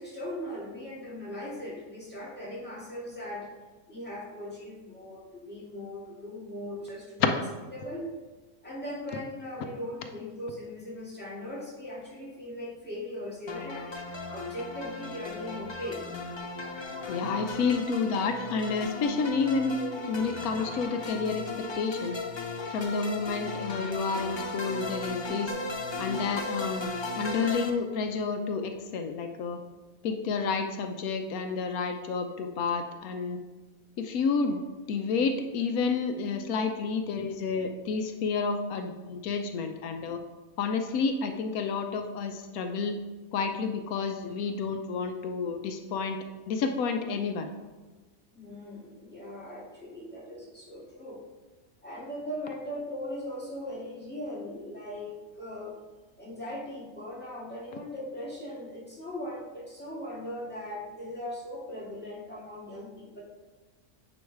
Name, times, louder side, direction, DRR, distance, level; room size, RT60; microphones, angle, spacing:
voice 1, 0.0-3.5 3.9-7.3 7.7-8.0 8.6-13.8 14.3-16.1 48.3-51.2 51.8-55.8 56.2-63.2, left 1 dB, 5° left, -7 dB, 2.2 m, -39 dB
sound 1, 13.5-27.7, left 2 dB, 45° left, 0.3 m, -36 dB
voice 2, 17.1-19.8 20.1-22.2 22.7-25.5 26.0-26.9 27.2-29.6 30.0-33.4 34.0-34.6 34.9-40.2 40.6-43.0 43.3-47.5, left 5 dB, 85° left, 6 dB, 1.1 m, -30 dB
9.3 x 3.1 x 4.6 m, 1.2 s
omnidirectional pair, 1.5 m